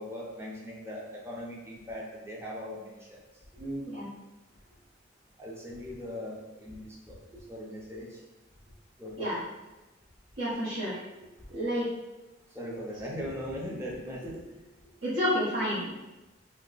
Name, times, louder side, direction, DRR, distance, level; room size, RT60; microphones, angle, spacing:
voice 1, 0.0-3.2 5.4-8.2 9.0-9.5 11.4-11.5 12.5-14.5, equal, 15° right, -4 dB, 0.6 m, -40 dB
voice 2, 3.6-4.1 9.2-9.4 10.4-11.0 11.5-11.9 15.0-15.9, equal, 80° right, -11 dB, 1.0 m, -30 dB
2.8 x 2.2 x 3.9 m, 1.0 s
head